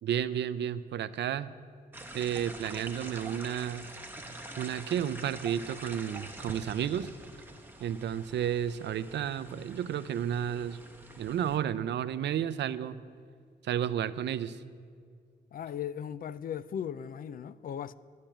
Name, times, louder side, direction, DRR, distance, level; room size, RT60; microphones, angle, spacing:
voice 1, 0.0-1.5 2.1-3.9 4.6-7.1 7.8-10.8 11.2-13.0 13.6-14.6, right 9 dB, 85° right, 0.5 m, -32 dB
sound 1, 1.9-11.6, right 1 dB, 10° right, 1.0 m, -46 dB
voice 2, 15.5-17.9, left 9 dB, 55° left, 0.4 m, -37 dB
11.5 x 7.4 x 9.0 m
wide cardioid pair, 140°, 18 cm